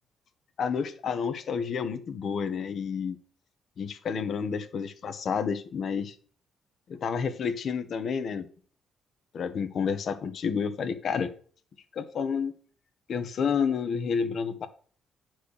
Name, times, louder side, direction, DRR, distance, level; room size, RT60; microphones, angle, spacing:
voice 1, 0.6-3.2 3.8-6.1 6.9-8.5 9.3-11.3 11.9-12.5 13.1-14.7, left 6 dB, 60° left, 10 dB, 1.3 m, -30 dB
10.0 x 4.7 x 6.6 m, 0.43 s
cardioid pair, 90°, 0 cm